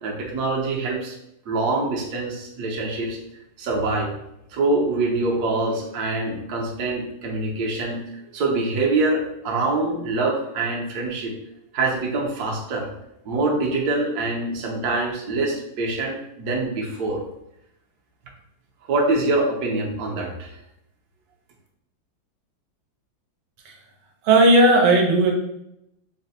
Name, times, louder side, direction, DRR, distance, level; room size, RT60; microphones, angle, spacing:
voice 1, 0.0-1.2 1.5-3.2 3.6-4.1 4.5-11.3 11.7-12.9 13.2-17.2 18.9-20.6, right 2 dB, 60° right, -2 dB, 1.2 m, -25 dB
voice 2, 24.2-25.3, right 2 dB, 90° right, 1 dB, 1.5 m, -15 dB
4.1 x 2.1 x 4.1 m, 0.81 s
omnidirectional pair, 2.1 m